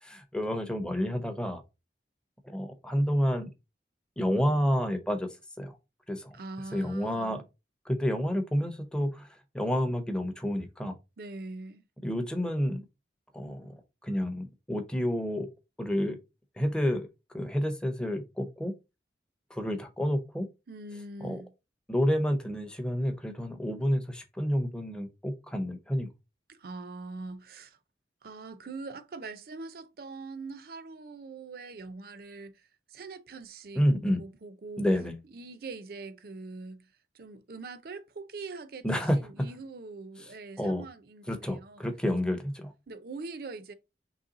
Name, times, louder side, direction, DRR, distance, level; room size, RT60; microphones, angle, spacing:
voice 1, 0.0-1.6 2.4-3.5 4.2-5.3 5.6-5.8 6.1-6.4 6.7-7.4 7.9-9.3 9.5-11.0 12.0-12.8 13.3-15.5 15.8-16.2 16.6-17.1 17.3-18.7 19.5-20.5 21.2-21.4 21.9-26.1 33.8-34.2 34.8-35.2 38.8-39.2 40.6-40.9 41.3-42.7, equal, 5° left, 0.6 m, -29 dB
voice 2, 6.3-7.4 11.2-11.8 20.7-21.5 26.5-27.8 28.2-33.9 34.1-34.8 35.3-36.9 37.1-41.9 42.9-43.7, right 3 dB, 55° right, 0.5 m, -43 dB
3.9 x 3.2 x 3.8 m
head